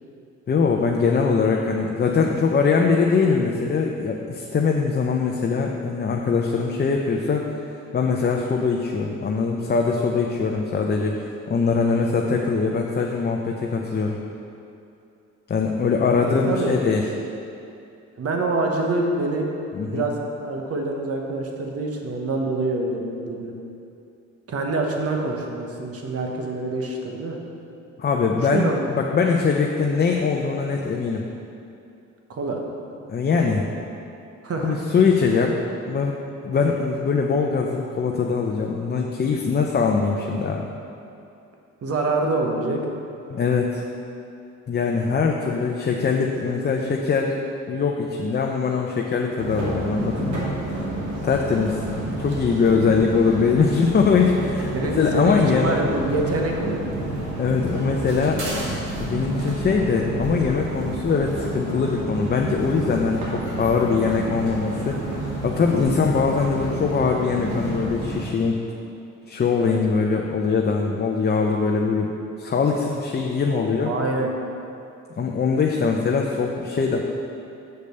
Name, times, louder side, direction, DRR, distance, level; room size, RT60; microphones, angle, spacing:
voice 1, 0.5-7.4 7.9-14.2 15.5-17.0 19.7-20.0 28.0-31.2 33.1-33.7 34.6-35.6 35.9-36.1 36.4-40.7 43.3-43.8 44.7-47.3 47.7-50.4 51.2-51.8 52.2-55.8 57.4-58.4 59.0-68.5 69.3-72.1 72.4-73.9 75.2-77.0, left 5 dB, 35° left, 1 dB, 0.6 m, -22 dB
voice 2, 16.2-16.7 18.2-19.5 19.8-23.5 24.5-27.4 28.4-28.8 32.3-32.6 34.4-34.9 41.8-42.8 50.5-50.9 53.7-53.9 54.7-57.0 69.6-69.8 73.5-74.3, right 2 dB, 50° right, 1 dB, 1.3 m, -26 dB
sound 1, 49.4-68.2, right 1 dB, 75° right, 2.1 m, -30 dB
6.8 x 5.1 x 6.8 m, 2.7 s
cardioid pair, 90°, 30 cm